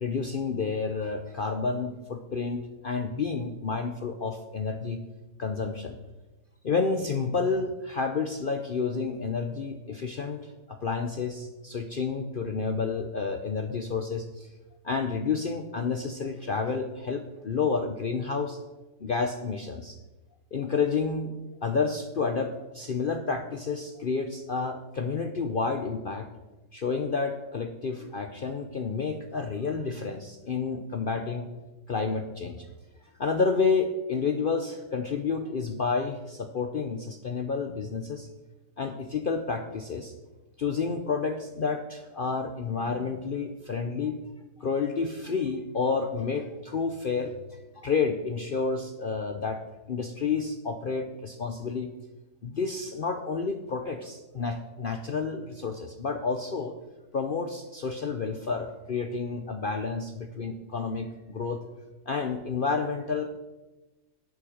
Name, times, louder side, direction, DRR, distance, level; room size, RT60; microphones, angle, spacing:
voice 1, 0.0-5.0 5.4-6.0 6.6-14.5 14.8-18.6 19.0-20.0 20.5-21.3 21.6-26.3 26.7-31.5 31.9-32.7 33.2-38.3 38.8-40.1 40.6-44.2 44.6-49.6 49.9-51.9 52.4-56.7 57.1-61.6 62.1-63.4, left 4 dB, 60° left, 7 dB, 0.5 m, -30 dB
11.0 x 8.8 x 5.0 m, 1.1 s
omnidirectional pair, 1.8 m